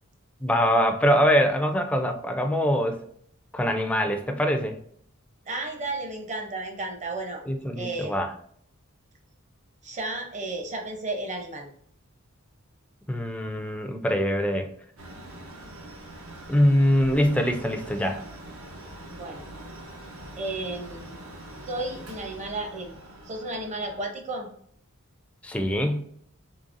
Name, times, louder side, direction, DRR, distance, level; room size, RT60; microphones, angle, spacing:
voice 1, 0.4-3.0 3.5-4.8 7.5-8.3 13.1-14.7 16.5-18.2 25.4-26.0, equal, 5° left, 5 dB, 0.3 m, -23 dB
voice 2, 5.5-7.4 7.7-8.2 9.8-11.7 19.1-19.5 20.4-21.2 21.6-23.0 23.2-24.5, right 2 dB, 35° right, 2 dB, 0.7 m, -33 dB
Mechanical fan, 15.0-24.0, right 1 dB, 80° right, 0.9 m, -43 dB
3.8 x 3.1 x 2.5 m, 0.64 s
head